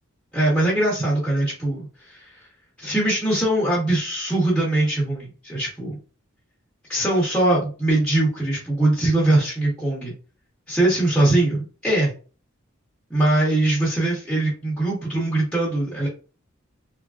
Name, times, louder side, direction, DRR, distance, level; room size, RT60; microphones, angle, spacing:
voice 1, 0.3-2.3 2.8-6.0 6.9-10.1 10.7-12.1 13.1-16.1, right 1 dB, 5° left, -6 dB, 0.8 m, -21 dB
3.2 x 2.4 x 2.3 m, 0.37 s
head